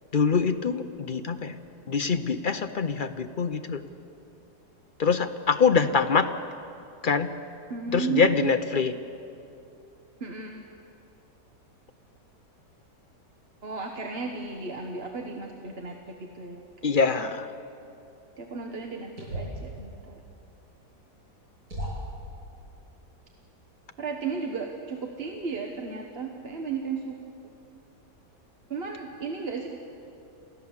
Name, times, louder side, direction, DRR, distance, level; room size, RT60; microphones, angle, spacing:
voice 1, 0.1-1.6 1.9-3.8 5.0-6.3 7.0-7.3 7.9-9.0 16.8-17.5, left 5 dB, 60° left, 8 dB, 0.5 m, -24 dB
voice 2, 7.7-8.6 10.2-10.6 13.6-16.9 18.4-20.2 24.0-27.2 28.7-29.7, right 5 dB, 40° right, 2 dB, 1.4 m, -34 dB
sound 1, 19.2-19.6 21.0-21.1 21.7-22.2, right 1 dB, 65° right, 8.3 m, -34 dB
28.5 x 14.5 x 7.3 m, 2.7 s
omnidirectional pair, 1.8 m